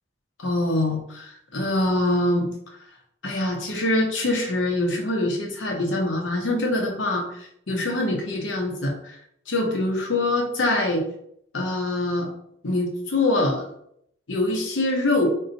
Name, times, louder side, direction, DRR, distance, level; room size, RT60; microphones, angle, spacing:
voice 1, 0.4-2.5 3.2-9.2 9.5-11.0 11.5-12.3 12.6-13.7 14.3-15.3, left 2 dB, 70° left, 1 dB, 0.7 m, -24 dB
2.6 x 2.3 x 3.8 m, 0.72 s
head